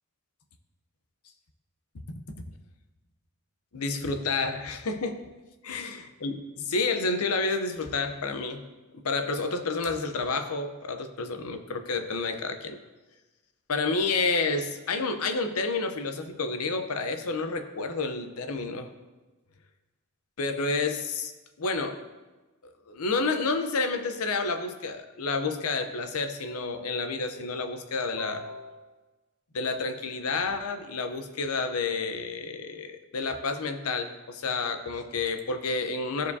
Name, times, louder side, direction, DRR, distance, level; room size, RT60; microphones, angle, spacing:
voice 1, 3.7-5.2 5.6-8.6 8.9-12.8 13.7-18.9 20.4-21.3 21.6-22.0 22.6-28.8 29.5-36.3, left 3 dB, 75° left, 7 dB, 0.7 m, -30 dB
14.0 x 4.7 x 2.7 m, 1.2 s
head